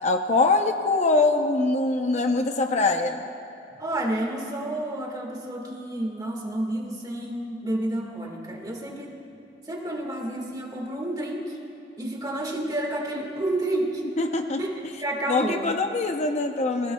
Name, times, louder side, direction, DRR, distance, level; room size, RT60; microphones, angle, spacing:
voice 1, 0.0-3.2 14.2-14.6 15.3-16.9, left 3 dB, 40° left, 5 dB, 0.7 m, -23 dB
voice 2, 3.8-9.2 9.7-11.6 12.0-14.0 14.6-15.7, right 1 dB, 20° right, 0 dB, 1.8 m, -30 dB
28.5 x 20.5 x 2.3 m, 2.7 s
head